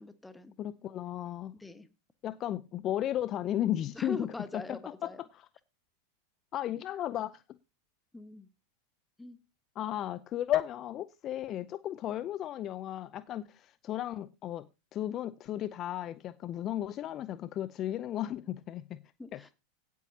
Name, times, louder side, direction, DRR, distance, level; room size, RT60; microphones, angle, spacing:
voice 1, 0.0-0.5 1.5-1.9 3.9-5.2 8.1-8.5 9.2-9.4 19.2-19.5, left 3 dB, 10° left, 1.4 m, -42 dB
voice 2, 0.6-1.5 2.2-4.3 5.0-5.1 6.5-7.4 9.8-14.7 14.9-19.0 19.3-19.5, left 12 dB, 40° left, 0.6 m, -34 dB
16.5 x 8.4 x 2.8 m
hypercardioid pair, 90°, 0 cm